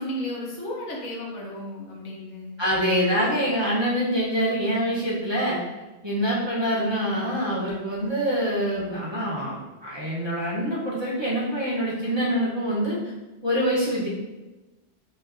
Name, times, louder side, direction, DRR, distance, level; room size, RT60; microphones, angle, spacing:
voice 1, 0.0-2.6, left 1 dB, 75° left, -3 dB, 1.2 m, -33 dB
voice 2, 2.6-5.6 6.0-13.0 13.4-14.1, equal, 25° right, -8 dB, 0.8 m, -25 dB
5.4 x 2.5 x 2.5 m, 1.1 s
omnidirectional pair, 1.2 m